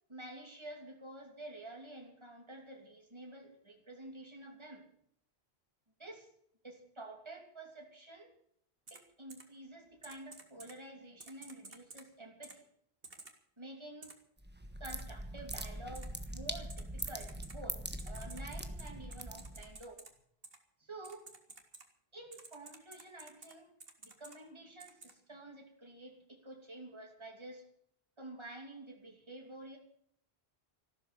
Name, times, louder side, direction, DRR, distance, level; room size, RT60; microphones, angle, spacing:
voice 1, 0.1-4.8 6.0-6.3 6.6-8.3 8.9-12.6 13.6-14.1 14.8-17.8 18.1-20.0 20.8-21.3 22.1-23.7 24.0-27.6 28.2-29.8, right 2 dB, 25° right, 2 dB, 2.9 m, -50 dB
Typing, 8.9-9.0 9.3-9.4 10.0-10.7 11.2-12.0 12.4-12.5 13.0-13.3 14.0-14.1 14.9-15.0 15.5-15.6 15.9-16.1 16.7-17.6 18.0-20.1 20.4-20.6 21.0-21.8 22.3-23.5 23.8-24.4 24.8-25.1, right 3 dB, 65° right, 2.2 m, -52 dB
sound 1, 14.4-19.8, right 1 dB, 10° right, 1.3 m, -42 dB
14.5 x 12.5 x 6.9 m, 0.67 s
omnidirectional pair, 1.1 m